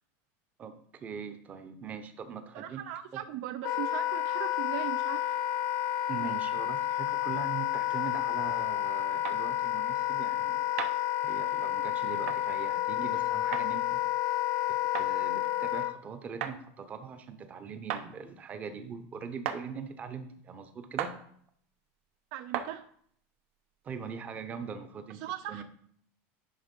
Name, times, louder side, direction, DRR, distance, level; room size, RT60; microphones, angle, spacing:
voice 1, 0.6-2.8 3.1-3.2 6.1-10.6 11.2-14.0 14.7-21.1 23.8-25.2 25.5-25.6, right 6 dB, 20° right, 0.7 m, -41 dB
voice 2, 2.5-5.4 22.3-22.8 25.2-25.6, right 12 dB, 50° right, 0.4 m, -39 dB
Wind instrument woodwind instrument, 3.6-15.9, left 13 dB, 45° left, 0.5 m, -30 dB
sound 1, 9.2-9.4 10.8-11.0 12.3-12.4 13.5-13.7 14.9-15.1 16.4-16.6 17.9-18.1 19.4-19.6 21.0-21.2 22.5-22.7, right 10 dB, 75° right, 0.8 m, -34 dB
10.5 x 3.5 x 5.3 m
cardioid pair, 170°, 7 cm